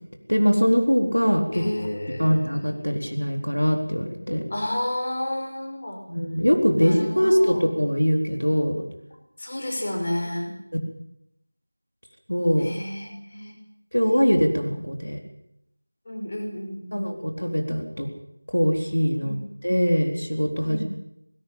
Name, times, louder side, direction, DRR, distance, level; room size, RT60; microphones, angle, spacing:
voice 1, 0.3-1.6 2.2-4.4 6.1-8.8 10.7-10.8 12.3-12.7 13.9-15.2 16.9-18.1 18.5-19.4 19.6-20.9, equal, 90° left, 3 dB, 4.1 m, -22 dB
voice 2, 1.5-2.4 4.5-6.0 6.8-7.6 9.4-10.5 12.6-13.5 16.1-17.1 19.2-19.4 20.6-20.9, left 1 dB, 35° left, 2 dB, 5.6 m, -31 dB
20.5 x 17.5 x 8.7 m, 0.79 s
figure-of-eight pair, 175°, 0 cm